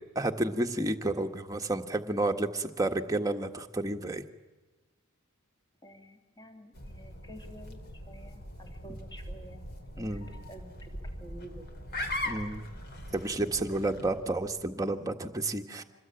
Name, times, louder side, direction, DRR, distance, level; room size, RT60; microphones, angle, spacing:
voice 1, 0.1-4.2 10.0-10.3 12.2-12.6 13.1-15.8, right 2 dB, 15° right, 4 dB, 1.6 m, -31 dB
voice 2, 5.8-7.8 8.1-9.6 10.0-11.8 13.4-13.8 15.8-15.9, equal, 20° left, 3 dB, 3.1 m, -50 dB
sound 1, 6.7-14.8, left 1 dB, 45° left, 3.4 m, -41 dB
27.0 x 21.0 x 9.2 m, 1.2 s
head